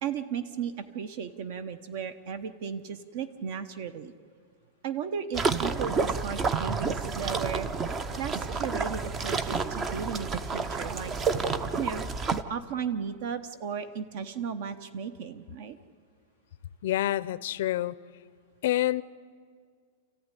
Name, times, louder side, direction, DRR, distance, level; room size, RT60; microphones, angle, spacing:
voice 1, 0.0-4.1 4.8-7.7 8.2-11.1 11.8-12.0 12.5-15.8, right 7 dB, 45° right, 12 dB, 1.0 m, -35 dB
sound 1, 5.3-12.4, right 4 dB, 15° right, 0.6 m, -30 dB
voice 2, 16.8-17.9 18.6-19.0, left 14 dB, 55° left, 16 dB, 0.6 m, -27 dB
28.5 x 14.5 x 9.9 m, 2.1 s
supercardioid pair, 170°, 0 cm